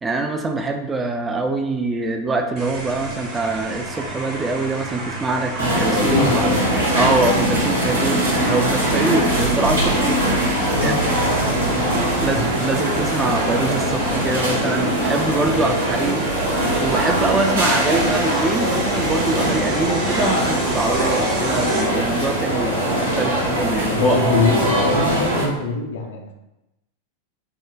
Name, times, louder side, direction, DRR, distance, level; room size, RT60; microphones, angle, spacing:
voice 1, 0.0-6.5 6.9-10.5 10.8-11.0 12.2-16.2 16.5-24.2, right 2 dB, 15° right, 4 dB, 0.3 m, -24 dB
sound 1, 2.6-21.8, right 2 dB, 40° right, 0.9 m, -32 dB
sound 2, 5.6-25.4, right 1 dB, 75° right, 0.8 m, -21 dB
voice 2, 5.9-6.7 10.6-11.9 12.2-12.4 23.8-26.3, left 3 dB, 60° left, 2 dB, 0.5 m, -24 dB
Conversation, 13.4-23.9, left 2 dB, 85° left, 1.1 m, -33 dB
3.5 x 2.1 x 2.4 m, 0.94 s
figure-of-eight pair, 90°, 0 cm